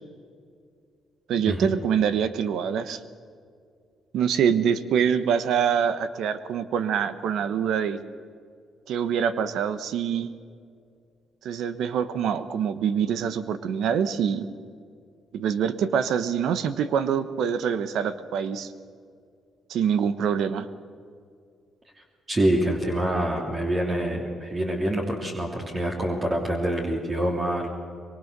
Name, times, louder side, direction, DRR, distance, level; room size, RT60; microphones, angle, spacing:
voice 1, 1.3-3.0 4.1-8.0 8.9-10.3 11.4-14.5 15.3-18.7 19.7-20.7, right 7 dB, 80° right, 12 dB, 1.1 m, -25 dB
voice 2, 22.3-27.7, right 1 dB, 35° right, 0 dB, 3.1 m, -26 dB
23.0 x 23.0 x 6.8 m, 2.2 s
cardioid pair, 90°, 0 cm